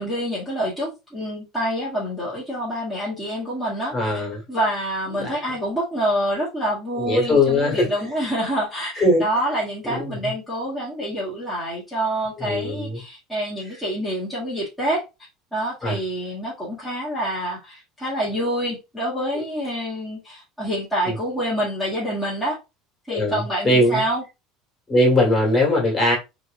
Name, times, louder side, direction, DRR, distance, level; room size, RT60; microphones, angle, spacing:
voice 1, 0.0-15.0 15.5-22.6 23.1-24.2, right 1 dB, ahead, 1.3 m, -27 dB
voice 2, 3.9-4.4 5.1-5.4 7.0-8.1 9.0-9.2 9.8-10.3 12.4-13.0 15.8-16.0 21.1-21.2 23.1-24.0 24.9-26.2, left 1 dB, 20° left, 1.8 m, -20 dB
4.3 x 3.0 x 2.5 m
cardioid pair, 165°, 0 cm